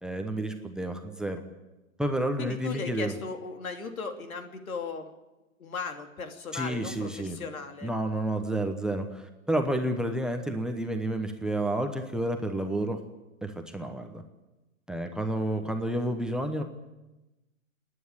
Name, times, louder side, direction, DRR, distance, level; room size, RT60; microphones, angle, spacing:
voice 1, 0.0-1.4 2.0-3.1 6.5-7.4 7.8-13.0 13.4-14.2 14.9-16.6, right 1 dB, ahead, 6 dB, 0.9 m, -30 dB
voice 2, 2.4-5.1 5.6-7.9, left 4 dB, 90° left, 6 dB, 3.1 m, -37 dB
28.0 x 9.8 x 9.7 m, 1.0 s
hypercardioid pair, 145°, 41 cm